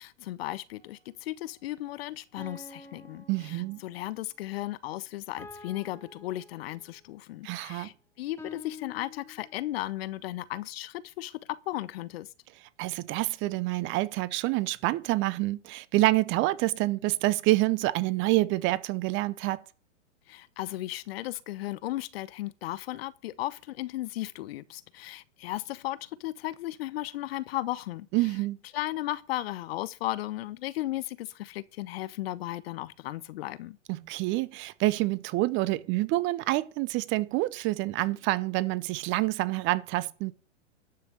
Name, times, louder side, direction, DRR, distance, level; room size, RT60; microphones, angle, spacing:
voice 1, 0.0-12.3 20.3-28.1 28.7-33.8, left 16 dB, 55° left, 0.9 m, -35 dB
sound 1, 0.7-0.9 2.4-4.1 5.4-7.1 8.4-9.9, left 4 dB, 5° left, 2.9 m, -48 dB
voice 2, 3.3-3.8 7.4-7.9 12.8-19.6 28.1-28.6 33.9-40.3, right 19 dB, 35° right, 0.8 m, -27 dB
12.5 x 6.0 x 8.0 m
hypercardioid pair, 115°, 36 cm